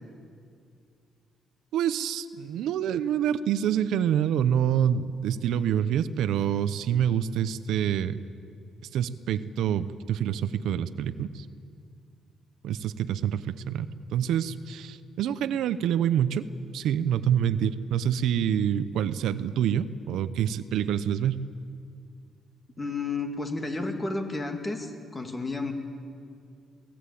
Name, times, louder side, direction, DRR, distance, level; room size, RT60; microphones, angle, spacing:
voice 1, 1.7-8.2 8.9-11.5 12.6-16.5 16.7-21.4, right 9 dB, 85° right, 13 dB, 0.8 m, -26 dB
voice 2, 22.8-25.7, left 3 dB, 20° left, 4 dB, 2.4 m, -32 dB
22.5 x 18.5 x 8.5 m, 2.4 s
cardioid pair, 115°, 0 cm